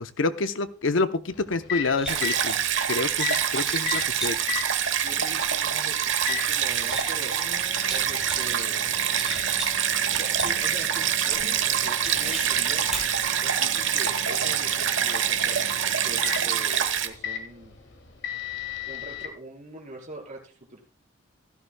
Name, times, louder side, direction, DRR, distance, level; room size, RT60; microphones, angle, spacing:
voice 1, 0.0-2.6 2.9-4.4, left 3 dB, 80° left, 0.7 m, -28 dB
Microwave oven, 1.3-19.3, left 7 dB, 65° left, 1.8 m, -38 dB
sound 1, 2.0-3.2 3.6-4.3 5.3-5.9 6.2-7.5 7.8-8.5 8.9-10.7 11.3-11.4 12.0-13.3, right 1 dB, 5° right, 6.4 m, -37 dB
Stream, 2.1-17.1, right 9 dB, 70° right, 1.1 m, -25 dB
voice 2, 4.9-7.4 7.9-8.8 10.2-15.7 16.0-17.8 18.9-20.8, right 1 dB, 40° right, 3.9 m, -42 dB
16.0 x 12.5 x 2.2 m
head